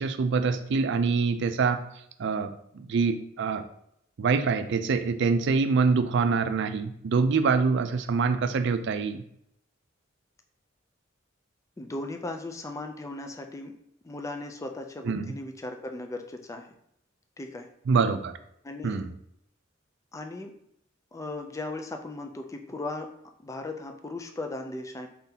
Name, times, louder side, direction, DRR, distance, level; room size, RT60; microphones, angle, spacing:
voice 1, 0.0-1.8 2.2-3.6 4.2-9.2 15.0-15.3 17.9-18.3 18.8-19.1, right 4 dB, 60° right, 10 dB, 0.4 m, -25 dB
voice 2, 11.8-13.8 14.0-16.7 17.4-17.7 18.6-19.0 20.1-20.5 21.1-23.1 23.4-25.1, left 2 dB, 15° left, 5 dB, 0.4 m, -37 dB
4.4 x 3.8 x 2.8 m, 0.74 s
head